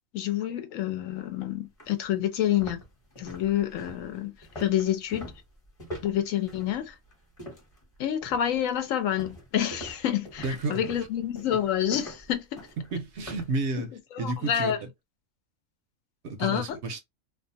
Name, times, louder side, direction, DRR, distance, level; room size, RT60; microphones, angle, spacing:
voice 1, 0.1-2.8 3.2-5.3 6.0-6.9 8.0-12.6 13.8-13.9 14.2-14.8 16.4-16.8, left 10 dB, 75° left, 1.0 m, -28 dB
sound 1, 1.2-1.3 1.8-1.9 2.4-7.8 8.2-8.6 9.2-13.6, equal, 30° left, 1.0 m, -43 dB
voice 2, 10.4-10.8 12.8-13.9 14.2-14.7 16.2-17.0, right 3 dB, 65° right, 0.8 m, -31 dB
2.4 x 2.3 x 2.5 m
omnidirectional pair, 1.4 m